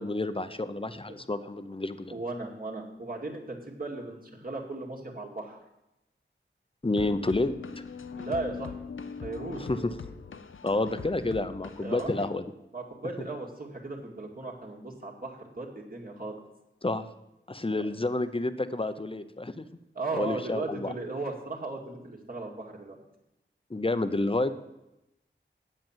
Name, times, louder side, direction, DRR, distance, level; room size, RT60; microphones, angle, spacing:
voice 1, 0.0-2.1 6.8-7.5 9.6-9.9 10.6-12.5 16.8-17.1 17.5-19.7 20.1-20.9 23.7-24.5, left 2 dB, 25° left, 11 dB, 0.8 m, -29 dB
voice 2, 2.1-5.6 8.1-8.8 9.2-9.6 11.8-12.3 12.7-16.4 17.8-17.9 19.9-23.0, right 3 dB, 45° right, -1 dB, 2.3 m, -36 dB
sound 1, 7.0-12.3, left 5 dB, 75° left, 0.6 m, -41 dB
8.7 x 8.0 x 7.4 m, 0.90 s
wide cardioid pair, 50°, 20 cm